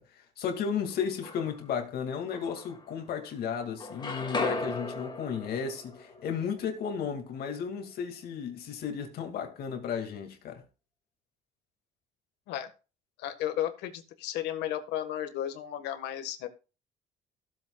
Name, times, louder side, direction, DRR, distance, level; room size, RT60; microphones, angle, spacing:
voice 1, 0.0-10.6, left 7 dB, 65° left, 2.1 m, -34 dB
sound 1, 0.9-1.8 2.3-3.4 3.6-7.6, left 2 dB, 25° left, 2.1 m, -38 dB
voice 2, 13.2-16.5, left 11 dB, 85° left, 1.5 m, -34 dB
15.0 x 8.1 x 2.3 m
cardioid pair, 110°, 17 cm